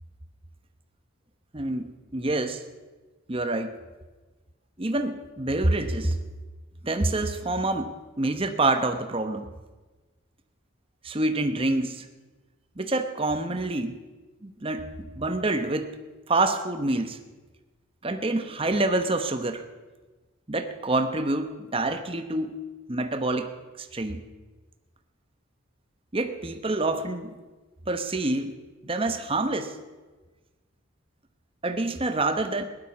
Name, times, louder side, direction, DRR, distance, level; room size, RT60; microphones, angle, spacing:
voice 1, 1.5-2.6 3.3-3.8 4.8-6.2 6.8-9.5 11.0-12.1 12.8-14.0 14.4-15.9 16.3-17.2 18.0-19.6 20.5-22.5 22.9-23.5 23.8-24.2 26.1-27.3 27.9-28.6 28.8-29.8 31.6-32.6, right 2 dB, 25° right, 7 dB, 0.9 m, -27 dB
17.0 x 11.5 x 6.0 m, 1.2 s
head